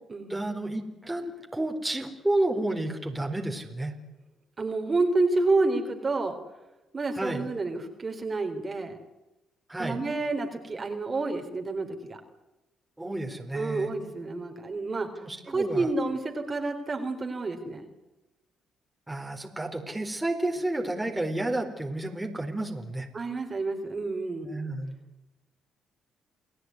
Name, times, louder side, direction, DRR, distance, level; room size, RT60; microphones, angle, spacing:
voice 1, 0.3-3.9 7.2-7.4 9.7-10.0 13.0-13.9 15.2-15.9 19.1-23.1 24.4-24.9, right 1 dB, 10° right, 3 dB, 4.2 m, -31 dB
voice 2, 4.6-6.4 6.9-9.0 9.8-12.2 13.5-15.1 15.5-17.9 23.1-24.5, right 3 dB, 30° right, 4 dB, 3.9 m, -29 dB
29.5 x 18.5 x 9.7 m, 1.0 s
cardioid pair, 90°, 0 cm